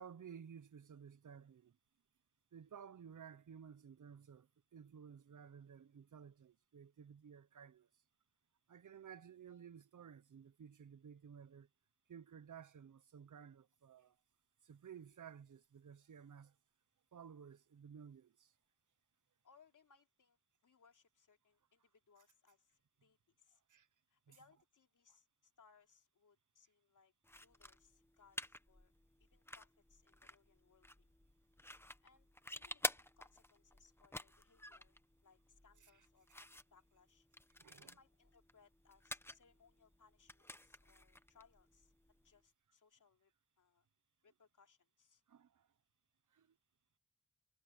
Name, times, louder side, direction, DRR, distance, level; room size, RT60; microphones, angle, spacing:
voice 1, 0.0-1.8 2.5-7.9 8.7-11.7 12.1-14.2 14.6-16.6 17.1-18.5 23.7-23.9 24.3-24.4 37.6-38.0 45.3-45.7 46.3-46.6, right 7 dB, 80° right, 1.0 m, -56 dB
voice 2, 19.4-23.6 24.1-28.9 29.2-31.1 32.0-37.3 37.8-41.9 42.2-43.3 43.6-43.9 44.2-45.2, left 5 dB, 90° left, 3.3 m, -70 dB
sound 1, 27.2-42.4, left 1 dB, 10° left, 1.1 m, -50 dB
cardioid pair, 60°, 30 cm